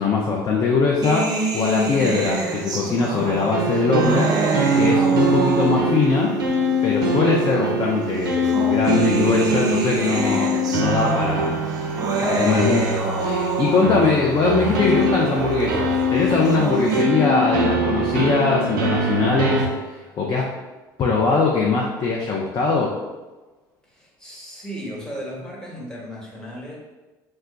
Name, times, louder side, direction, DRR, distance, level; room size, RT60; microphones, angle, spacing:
voice 1, 0.0-4.3 4.7-6.3 6.8-19.6 20.2-20.5 21.0-22.9, left 4 dB, 35° left, -2 dB, 0.5 m, -21 dB
sound 1, 1.0-6.1 7.0-7.1 8.2-14.1 16.3-17.0, right 3 dB, 35° right, 0.6 m, -27 dB
sound 2, 3.5-19.7, right 1 dB, 85° right, 0.4 m, -23 dB
voice 2, 23.8-26.8, equal, 5° left, -4 dB, 1.0 m, -35 dB
2.2 x 2.2 x 3.8 m, 1.2 s
hypercardioid pair, 65°, 11 cm